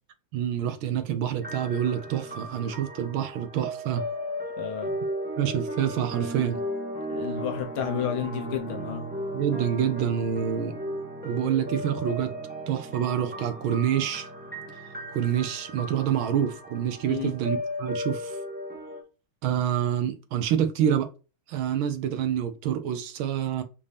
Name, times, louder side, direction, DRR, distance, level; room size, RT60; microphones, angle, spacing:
voice 1, 0.3-4.0 5.4-6.6 9.3-10.7 11.2-12.4 12.7-14.3 15.1-18.4 19.4-21.1 21.5-23.6, right 9 dB, 75° right, 1.4 m, -27 dB
sound 1, 1.4-19.0, equal, 10° right, 0.4 m, -35 dB
voice 2, 4.6-5.0 7.1-9.1 17.1-17.3, left 8 dB, 75° left, 1.8 m, -31 dB
5.2 x 2.7 x 3.3 m
omnidirectional pair, 2.4 m